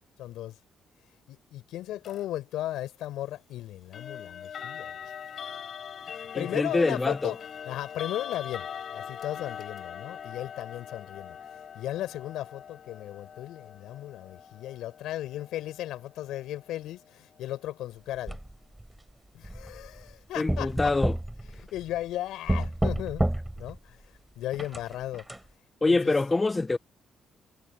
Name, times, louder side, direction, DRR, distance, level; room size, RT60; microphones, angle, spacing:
voice 1, 0.2-0.6 1.3-5.1 6.2-7.4 7.7-11.4 11.7-18.4 19.3-20.9 21.5-23.3 23.5-24.0 24.4-25.3 25.9-26.1, left 14 dB, 85° left, 5.6 m, -36 dB
sound 1, 2.0-2.2 3.9-16.8, left 8 dB, 55° left, 7.7 m, -42 dB
voice 2, 6.3-7.3 20.4-21.2 25.8-26.8, left 3 dB, 20° left, 0.6 m, -25 dB
sound 2, 18.3-18.9 19.4-20.1 20.5-22.1 22.5-23.8 24.5-25.4, right 1 dB, 10° right, 3.9 m, -30 dB
cardioid pair, 90°, 0 cm